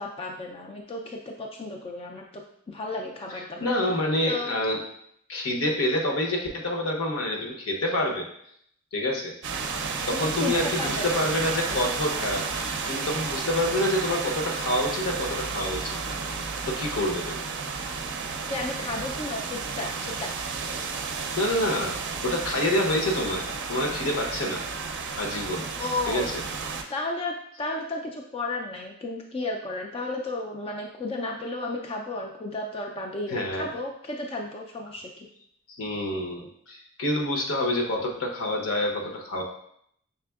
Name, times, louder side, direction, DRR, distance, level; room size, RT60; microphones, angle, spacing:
voice 1, 0.0-4.0 4.3-4.5 10.1-11.2 18.5-20.3 25.7-26.3 26.9-35.3, left 2 dB, 25° left, 1 dB, 0.3 m, -33 dB
voice 2, 3.6-4.8 5.3-8.3 8.9-9.3 10.1-16.1 16.6-17.4 21.3-21.9 22.2-24.6 25.2-25.7 26.1-26.3 33.3-33.7 35.7-39.4, left 1 dB, 75° left, 1 dB, 0.9 m, -27 dB
Wind In Woodland, 9.4-26.8, right 5 dB, 55° right, 0.5 m, -32 dB
5.7 x 3.5 x 2.3 m, 0.70 s
head